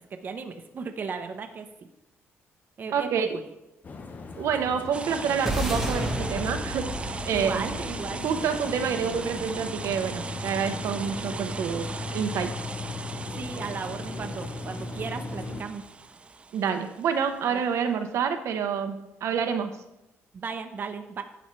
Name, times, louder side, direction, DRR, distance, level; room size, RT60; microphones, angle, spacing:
voice 1, 0.2-1.7 2.8-3.4 7.3-8.2 13.4-15.8 17.5-17.6 20.3-21.2, right 5 dB, 40° right, 6 dB, 0.8 m, -35 dB
voice 2, 2.9-3.4 4.4-7.8 8.2-12.5 16.5-19.8, right 7 dB, 75° right, 7 dB, 0.7 m, -28 dB
sound 1, 3.8-15.6, left 3 dB, 35° left, 0.8 m, -37 dB
sound 2, 4.9-17.5, right 4 dB, 25° right, 0.4 m, -39 dB
sound 3, 5.5-9.9, equal, 5° right, 1.2 m, -33 dB
11.0 x 7.0 x 3.1 m, 0.93 s
cardioid pair, 135°, 5 cm